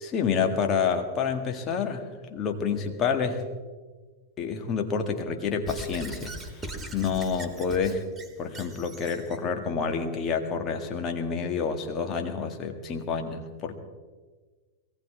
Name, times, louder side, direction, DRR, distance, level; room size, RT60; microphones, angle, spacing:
voice 1, 0.0-2.0 2.3-3.4 4.4-6.3 6.9-8.0 8.4-13.8, left 6 dB, 30° left, 4 dB, 2.0 m, -28 dB
Squeak / Writing, 5.7-9.4, right 1 dB, 15° right, 2.2 m, -40 dB
22.5 x 17.5 x 3.5 m, 1.4 s
figure-of-eight pair, 90°, 0 cm